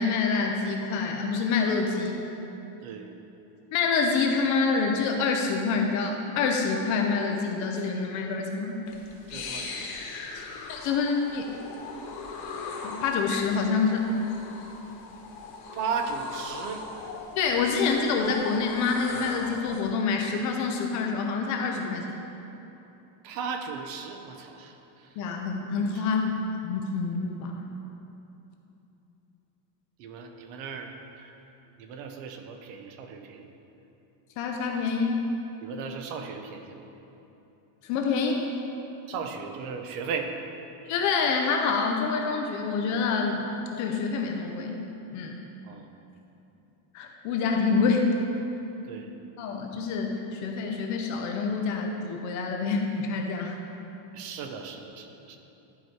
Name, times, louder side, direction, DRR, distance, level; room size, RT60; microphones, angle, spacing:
voice 1, 0.0-2.2 3.7-8.8 10.3-10.4 10.7-11.4 12.8-14.1 17.4-22.2 25.2-27.7 34.4-35.2 37.8-38.5 40.9-43.5 43.7-44.8 45.1-45.4 46.9-48.1 49.4-53.6, left 4 dB, 40° left, 2 dB, 0.5 m, -27 dB
voice 2, 2.8-3.1 9.3-9.9 15.7-17.1 23.2-25.2 25.9-26.1 30.0-31.4 31.8-33.5 35.6-36.8 39.1-40.3 45.6-45.9 48.8-49.1 54.1-55.4, right 5 dB, 65° right, 5 dB, 0.9 m, -36 dB
sound 1, 8.9-19.9, left 4 dB, 70° left, 1.3 m, -40 dB
11.5 x 4.8 x 4.6 m, 3.0 s
cardioid pair, 180°, 50 cm